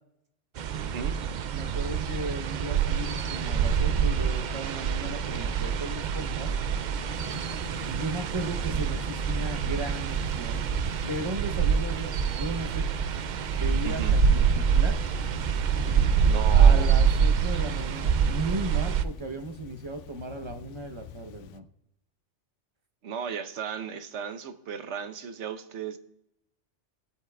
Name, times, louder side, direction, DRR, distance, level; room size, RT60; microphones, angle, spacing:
sound 1, 0.6-19.0, right 7 dB, 60° right, 0.5 m, -25 dB
voice 1, 0.7-1.2 13.8-14.2 16.2-17.0 23.0-26.0, right 7 dB, 75° right, 10 dB, 1.1 m, -35 dB
voice 2, 1.5-6.5 7.9-12.8 13.5-15.0 16.5-21.7, right 1 dB, 25° right, 5 dB, 0.8 m, -36 dB
Thunder / Rain, 7.1-21.6, left 9 dB, 85° left, 0.9 m, -44 dB
20.0 x 8.2 x 2.3 m, 0.81 s
omnidirectional pair, 1.2 m